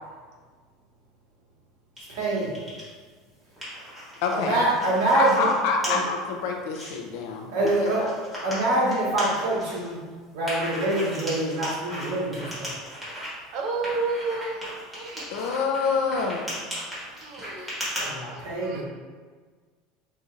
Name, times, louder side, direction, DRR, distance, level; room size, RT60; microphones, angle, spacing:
sound 1, 2.0-2.9 3.3-5.5 5.8-5.9 6.4-6.9 7.7-9.9 10.4-13.3 13.8-18.0, equal, 10° right, 1.4 m, -37 dB
voice 1, 2.1-2.6 4.3-5.5 5.8-6.0 7.5-10.0 10.3-12.7 18.0-18.8, right 2 dB, 85° right, -5 dB, 1.4 m, -25 dB
voice 2, 4.2-4.6 5.1-7.5 7.8-8.1 15.3-16.5, left 4 dB, 70° left, 2 dB, 0.6 m, -26 dB
voice 3, 13.5-15.3 17.1-18.8, right 3 dB, 50° right, 0 dB, 0.6 m, -32 dB
5.2 x 2.8 x 2.4 m, 1.5 s
cardioid pair, 155°, 0 cm